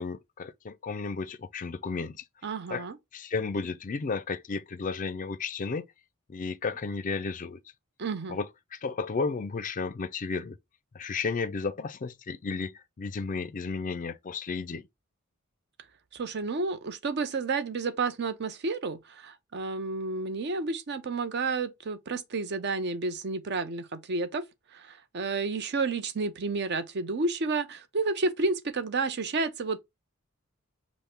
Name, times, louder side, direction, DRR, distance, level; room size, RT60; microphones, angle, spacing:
voice 1, 0.0-2.2 2.7-2.9 3.1-5.9 6.3-7.6 8.3-10.6 10.9-14.9, left 4 dB, 40° left, 0.4 m, -33 dB
voice 2, 2.4-3.0 8.0-8.4 16.1-24.4 24.7-29.8, right 3 dB, 50° right, 0.6 m, -31 dB
5.4 x 2.1 x 4.4 m
head